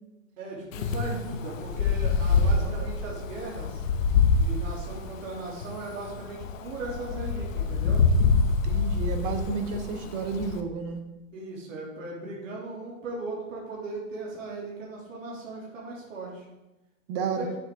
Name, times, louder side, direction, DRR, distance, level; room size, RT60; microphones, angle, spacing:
voice 1, 0.4-3.8 4.3-8.0 11.3-16.4 17.4-17.5, right 2 dB, 75° right, -4 dB, 3.1 m, -38 dB
Wind, 0.7-10.6, left 4 dB, 85° left, 1.1 m, -26 dB
voice 2, 2.3-2.9 8.5-11.0 17.1-17.5, right 5 dB, 25° right, 7 dB, 0.7 m, -32 dB
9.0 x 8.3 x 3.8 m, 1.0 s
supercardioid pair, 170°, 39 cm